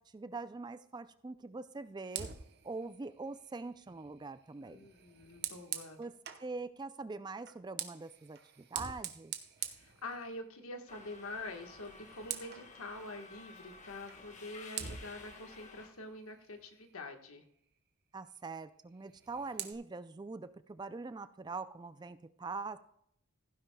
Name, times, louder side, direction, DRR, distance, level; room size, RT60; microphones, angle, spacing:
voice 1, 0.0-2.3 2.6-4.9 6.0-9.3 18.1-22.8, right 3 dB, 20° right, 13 dB, 0.3 m, -43 dB
Fire, 2.1-6.5 7.4-10.7 11.0-11.3 11.6-12.7 14.1-14.2 14.7-17.1 19.0-19.7, right 9 dB, 50° right, 0.9 m, -45 dB
voice 2, 4.6-6.0 9.6-17.4, left 2 dB, 75° left, 5 dB, 1.4 m, -46 dB
Subway metro underground, 10.9-15.9, left 3 dB, 35° left, 1.5 m, -53 dB
15.5 x 10.0 x 2.3 m, 0.73 s
head